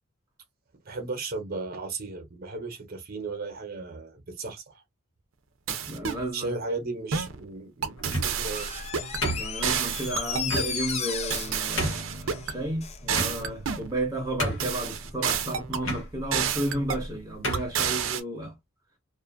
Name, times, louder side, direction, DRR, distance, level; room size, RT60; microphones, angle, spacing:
voice 1, 0.8-4.8 6.3-8.8, right 3 dB, 50° right, 0.8 m, -35 dB
sound 1, 5.7-6.3 7.1-7.4 7.8-9.2 9.6-10.7 11.3-12.6 13.1-13.9 14.4-15.9 16.3-17.1 17.5-18.2, right 7 dB, 85° right, 0.5 m, -30 dB
voice 2, 5.9-6.6 9.3-18.5, right 1 dB, 15° right, 0.8 m, -33 dB
sound 2, 8.0-8.5 9.2-9.9 10.5-10.7 11.3-11.4 11.8-12.1 13.1-13.7 14.0-14.1 14.4-14.9 15.8-16.0 16.9-17.0 17.4-17.7, equal, 75° left, 1.1 m, -30 dB
Door, 8.5-13.1 13.4-13.5, left 6 dB, 35° left, 0.4 m, -35 dB
2.5 x 2.4 x 2.5 m
head